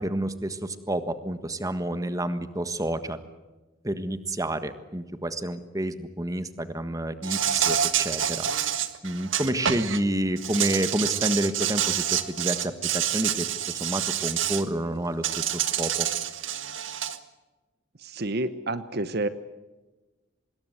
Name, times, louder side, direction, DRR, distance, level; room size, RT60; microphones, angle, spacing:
voice 1, 0.0-3.2 3.8-8.5 9.0-16.1, right 1 dB, 15° right, 11 dB, 1.5 m, -29 dB
Insect, 7.2-10.0 10.4-14.6 15.2-17.2, right 10 dB, 80° right, 1.7 m, -27 dB
voice 2, 18.0-19.3, right 2 dB, 55° right, 13 dB, 1.0 m, -29 dB
25.0 x 21.0 x 8.2 m, 1.2 s
head